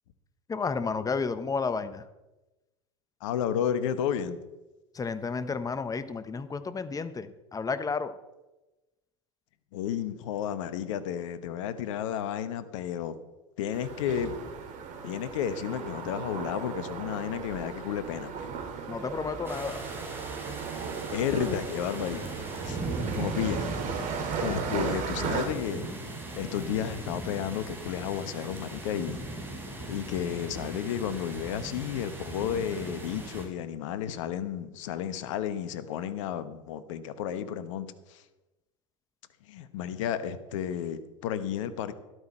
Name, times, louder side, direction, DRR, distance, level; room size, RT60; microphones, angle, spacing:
voice 1, 0.5-2.0 4.9-8.1 18.9-19.8, left 4 dB, 20° left, 12 dB, 1.0 m, -31 dB
voice 2, 3.2-4.4 9.7-13.2 13.6-14.4 15.0-18.5 21.1-22.3 22.6-23.8 24.4-25.9 26.3-29.2 29.9-38.2 39.5-41.9, left 9 dB, 70° left, 13 dB, 1.1 m, -32 dB
sound 1, 13.7-25.5, right 6 dB, 50° right, 2.3 m, -36 dB
sound 2, 19.4-33.4, right 2 dB, 15° right, 4.6 m, -39 dB
13.0 x 12.0 x 4.4 m, 1.1 s
hypercardioid pair, 85°, 17 cm